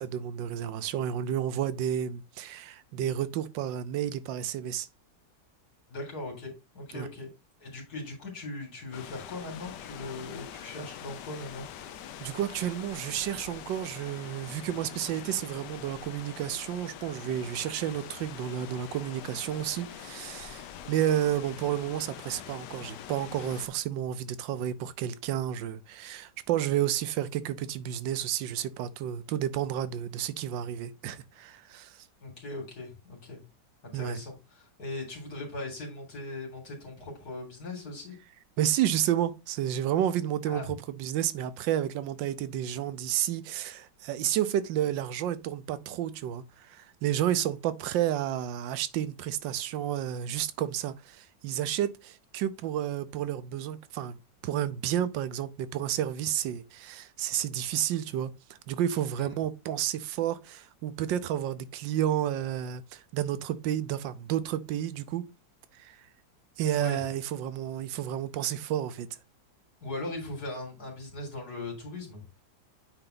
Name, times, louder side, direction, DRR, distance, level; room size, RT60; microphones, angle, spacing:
voice 1, 0.0-4.9 6.9-7.1 12.2-32.0 33.9-34.2 38.6-54.2 54.4-65.3 65.7-66.0 66.6-69.1, right 11 dB, 90° right, 1.4 m, -31 dB
voice 2, 5.9-7.3 7.6-11.6 32.2-33.4 33.8-38.1 40.5-40.8 59.2-59.4 66.7-67.0 69.8-72.4, left 2 dB, 55° left, 3.6 m, -39 dB
sound 1, 8.9-23.7, left 10 dB, 75° left, 1.3 m, -44 dB
9.0 x 3.8 x 3.9 m
omnidirectional pair, 1.9 m